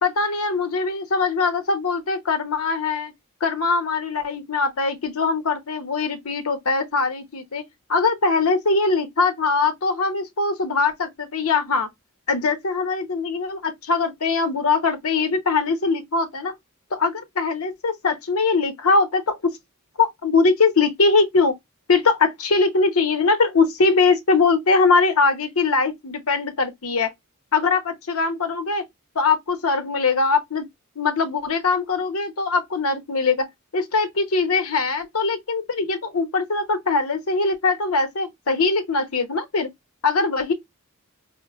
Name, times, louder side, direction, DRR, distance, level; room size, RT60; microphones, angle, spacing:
voice 1, 0.0-3.1 3.4-7.6 7.9-11.9 12.3-16.5 16.9-19.4 20.0-21.5 21.9-27.1 27.5-28.8 29.1-30.7 31.0-33.5 33.7-39.7 40.0-40.5, left 4 dB, 75° left, 0.8 m, -21 dB
5.1 x 2.1 x 2.3 m
head